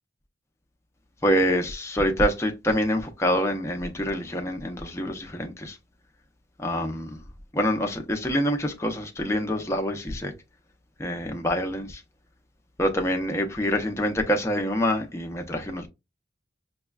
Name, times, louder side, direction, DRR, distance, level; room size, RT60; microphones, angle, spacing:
voice 1, 1.2-5.8 6.6-7.2 7.5-10.3 11.0-12.0 12.8-15.9, equal, 15° left, 0.6 m, -26 dB
6.1 x 2.2 x 2.3 m
head